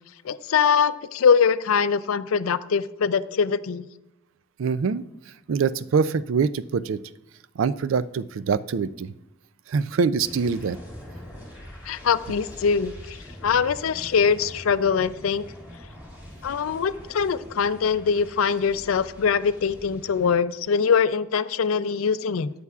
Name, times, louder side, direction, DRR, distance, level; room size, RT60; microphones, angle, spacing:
voice 1, 0.2-3.9 11.9-15.4 16.4-22.5, left 6 dB, 85° left, 15 dB, 0.4 m, -23 dB
voice 2, 4.6-5.0 5.5-7.0 7.6-9.1 9.7-10.8, right 5 dB, 70° right, 16 dB, 0.4 m, -24 dB
sound 1, 10.2-20.3, equal, 10° right, 3.9 m, -43 dB
13.5 x 9.6 x 2.4 m, 0.93 s
head